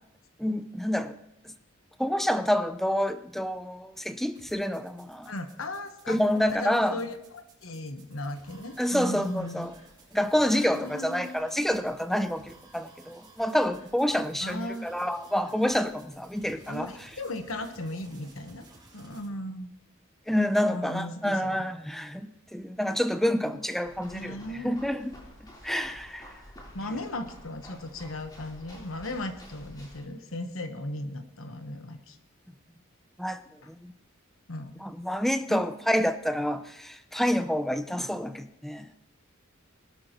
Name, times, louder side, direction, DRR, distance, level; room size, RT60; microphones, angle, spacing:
voice 1, 0.4-1.1 1.4-1.5 2.0-5.3 6.1-7.0 8.8-9.7 10.1-16.9 20.3-24.4 24.6-25.1 25.6-26.3 33.2-33.4 33.7-33.9 34.8-38.9, equal, ahead, 10 dB, 0.6 m, -28 dB
sound 1, 4.4-19.3, right 2 dB, 25° right, 5.4 m, -55 dB
voice 2, 5.2-6.2 6.5-9.7 10.5-11.3 14.4-14.9 16.7-18.6 18.9-19.7 20.7-21.6 24.1-24.8 26.7-32.2 33.6-33.7 34.5-34.8 35.5-35.6, left 1 dB, 75° left, 8 dB, 1.2 m, -37 dB
sound 2, 23.8-30.0, equal, 20° left, 3.8 m, -50 dB
20.5 x 12.0 x 3.0 m, 0.90 s
head